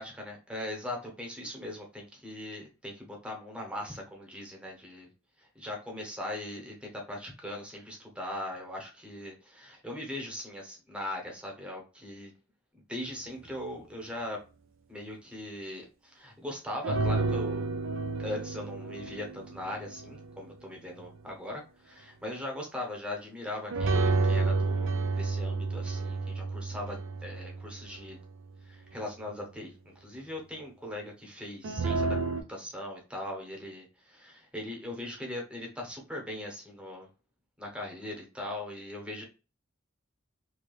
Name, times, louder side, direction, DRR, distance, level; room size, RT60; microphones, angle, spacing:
voice 1, 0.0-5.1 5.4-12.3 12.7-14.4 14.9-17.7 18.2-28.2 28.6-32.2 32.5-37.1 37.6-39.2, left 1 dB, 5° right, 0 dB, 0.8 m, -40 dB
sound 1, 16.8-20.3 23.7-28.3 31.6-32.4, right 3 dB, 65° right, 0.4 m, -30 dB
3.2 x 2.8 x 2.3 m, 0.32 s
head